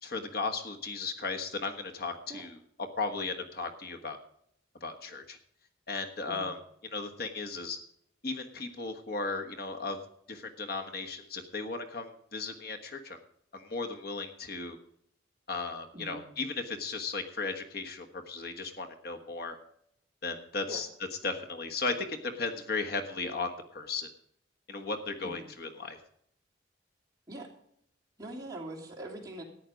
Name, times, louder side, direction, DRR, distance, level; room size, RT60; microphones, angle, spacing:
voice 1, 0.0-2.6 3.0-4.2 4.8-5.4 5.9-6.6 6.9-7.8 8.2-10.0 10.3-13.2 13.5-14.8 15.5-19.6 20.2-20.9 21.2-24.1 24.7-26.0, left 3 dB, 55° left, 4 dB, 1.3 m, -36 dB
voice 2, 28.2-29.4, right 1 dB, 20° right, -2 dB, 3.0 m, -42 dB
14.0 x 9.8 x 5.2 m, 0.69 s
head